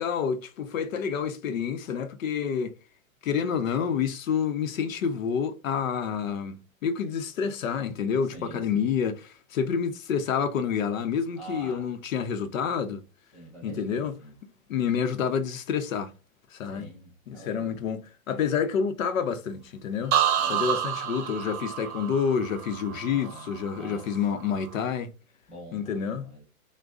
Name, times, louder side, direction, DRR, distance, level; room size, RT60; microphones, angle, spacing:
voice 1, 0.0-2.8 3.2-13.0 13.6-14.1 14.7-16.1 16.5-16.9 17.3-20.2 20.5-25.1 25.7-26.3, left 7 dB, 65° left, 0.8 m, -28 dB
voice 2, 8.2-9.0 11.4-11.9 13.3-14.4 16.6-17.9 20.4-20.8 23.1-24.1 25.5-26.4, right 2 dB, ahead, 0.4 m, -45 dB
sound 1, 20.1-23.9 24.3-24.8, right 10 dB, 50° right, 0.9 m, -29 dB
6.1 x 2.2 x 2.4 m
hypercardioid pair, 150°, 43 cm